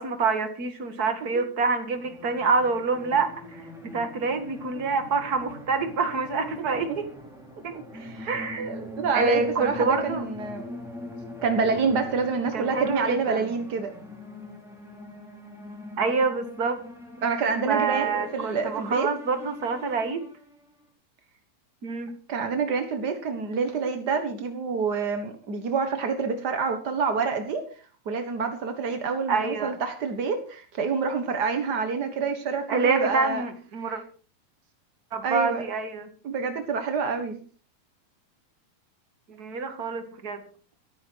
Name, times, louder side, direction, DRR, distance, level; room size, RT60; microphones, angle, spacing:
voice 1, 0.0-7.1 7.6-7.7 8.3-8.7 9.1-10.3 12.5-13.4 16.0-16.8 17.7-20.2 21.8-22.1 29.3-29.7 32.7-34.0 35.1-36.1 39.3-40.4, right 4 dB, 35° right, 8 dB, 1.6 m, -27 dB
sound 1, 1.9-20.7, left 1 dB, ahead, 3.6 m, -42 dB
voice 2, 7.7-10.6 11.4-13.9 17.2-19.1 22.3-27.6 28.0-33.4 33.8-34.0 35.2-35.6 36.2-37.4, right 5 dB, 60° right, 6 dB, 1.0 m, -27 dB
14.0 x 13.5 x 4.6 m, 0.39 s
omnidirectional pair, 4.1 m